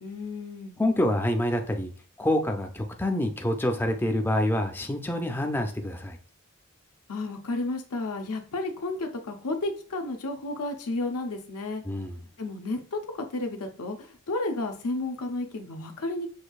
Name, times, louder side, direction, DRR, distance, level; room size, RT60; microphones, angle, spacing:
voice 1, 0.0-0.8 7.1-11.8 12.4-14.0 14.3-16.3, left 2 dB, 90° left, 5 dB, 0.7 m, -32 dB
voice 2, 0.8-1.9 2.2-6.2 11.8-12.2, left 1 dB, 10° left, 5 dB, 0.4 m, -27 dB
6.3 x 2.6 x 2.3 m, 0.41 s
head